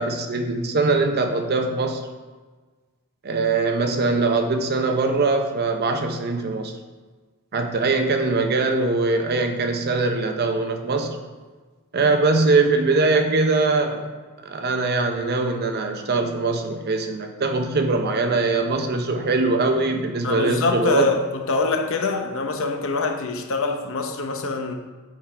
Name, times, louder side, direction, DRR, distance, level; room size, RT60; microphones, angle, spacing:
voice 1, 0.0-2.0 3.2-6.7 7.5-11.2 11.9-14.1 14.4-21.1, right 3 dB, 50° right, 5 dB, 0.6 m, -22 dB
voice 2, 20.2-24.8, left 3 dB, 65° left, 5 dB, 0.8 m, -24 dB
8.5 x 3.8 x 4.5 m, 1.4 s
head